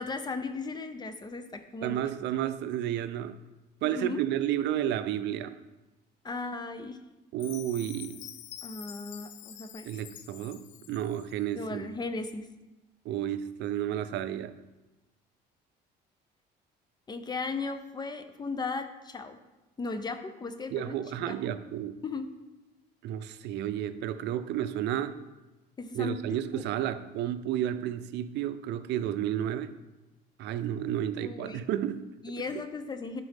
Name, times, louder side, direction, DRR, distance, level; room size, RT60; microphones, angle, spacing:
voice 1, 0.0-2.0 3.8-4.2 6.2-7.0 8.6-9.9 11.5-12.5 17.1-19.4 19.8-21.0 21.3-21.6 22.0-22.3 25.8-26.2 26.5-26.6 31.2-31.6 32.2-33.2, left 3 dB, 20° left, 9 dB, 0.6 m, -36 dB
voice 2, 1.8-3.4 3.8-5.5 7.3-8.3 9.8-11.9 13.0-14.5 20.7-22.0 23.0-25.2 25.9-29.7 30.4-32.0 32.5-32.6, right 11 dB, 70° right, 12 dB, 0.5 m, -31 dB
Chime, 7.4-11.5, left 12 dB, 80° left, 0.5 m, -47 dB
10.5 x 4.1 x 3.5 m, 1.1 s
cardioid pair, 110°, 19 cm